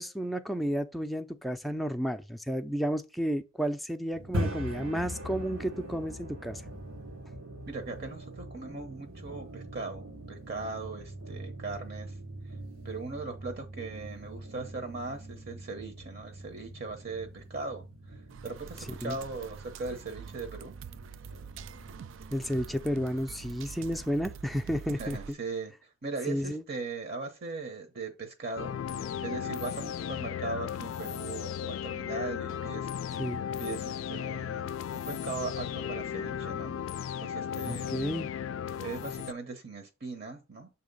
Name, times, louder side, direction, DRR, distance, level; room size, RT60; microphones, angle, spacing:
voice 1, 0.0-6.6 19.0-19.2 22.3-25.2 26.3-26.6 33.2-33.4 37.6-38.3, equal, ahead, 0.4 m, -32 dB
sound 1, 4.1-24.0, right 1 dB, 90° right, 1.2 m, -42 dB
voice 2, 7.7-12.1 12.8-20.7 25.0-33.2 33.6-34.7 34.9-36.8 37.2-37.9 38.7-40.7, right 3 dB, 50° right, 0.9 m, -39 dB
sound 2, 18.3-25.3, right 7 dB, 65° right, 0.3 m, -46 dB
sound 3, 28.6-39.3, left 8 dB, 70° left, 0.3 m, -35 dB
7.2 x 2.8 x 5.2 m
head